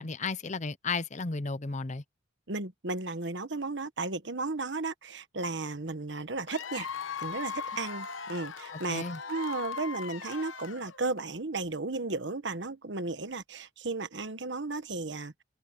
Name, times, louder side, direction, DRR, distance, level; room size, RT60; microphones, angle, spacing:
voice 1, 0.0-2.0 8.7-9.2, left 4 dB, 35° left, 0.7 m, -34 dB
voice 2, 2.5-6.9 7.2-15.4, right 3 dB, 60° right, 1.3 m, -34 dB
Cheering / Applause / Crowd, 6.5-11.2, left 6 dB, 80° left, 1.0 m, -39 dB
head